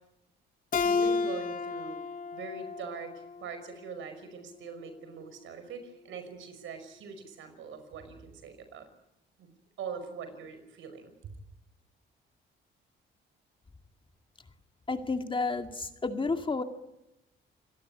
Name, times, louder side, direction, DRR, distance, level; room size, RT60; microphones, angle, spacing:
Keyboard (musical), 0.7-4.0, left 4 dB, 45° left, 1.8 m, -32 dB
voice 1, 0.8-2.0 2.3-8.9 9.4-11.3, right 6 dB, 80° right, 9 dB, 5.4 m, -42 dB
voice 2, 14.9-16.6, left 3 dB, 25° left, 7 dB, 2.2 m, -31 dB
28.5 x 18.0 x 9.7 m, 0.88 s
cardioid pair, 90°, 20 cm